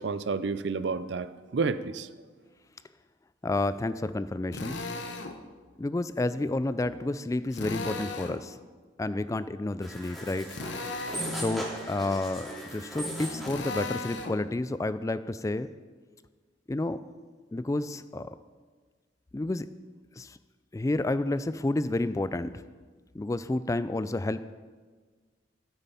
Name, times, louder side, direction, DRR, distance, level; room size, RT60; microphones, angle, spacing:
voice 1, 0.0-2.1, right 4 dB, 65° right, 14 dB, 0.5 m, -30 dB
voice 2, 3.4-4.8 5.8-8.6 9.0-10.5 11.3-15.7 16.7-17.0 17.5-18.3 19.3-19.7 20.2-20.4 20.7-22.6 23.1-24.4, left 2 dB, 15° left, 14 dB, 0.3 m, -30 dB
Drill, 4.5-5.4 7.5-8.4 10.5-11.4 13.4-14.4, left 3 dB, 70° left, 1.0 m, -36 dB
sound 1, 9.8-13.6, equal, ahead, 2.3 m, -37 dB
12.5 x 8.2 x 5.6 m, 1.4 s
head